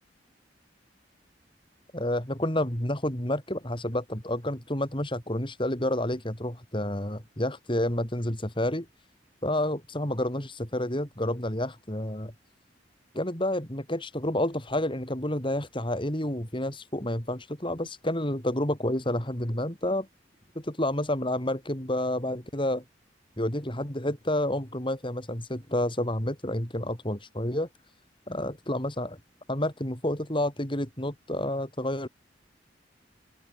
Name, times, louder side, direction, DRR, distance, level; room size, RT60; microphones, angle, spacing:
voice 1, 1.9-8.9 9.4-12.3 13.1-20.1 20.6-22.8 23.4-27.7 28.3-29.2 29.5-32.1, left 1 dB, 25° left, 5.4 m, -29 dB
open air
head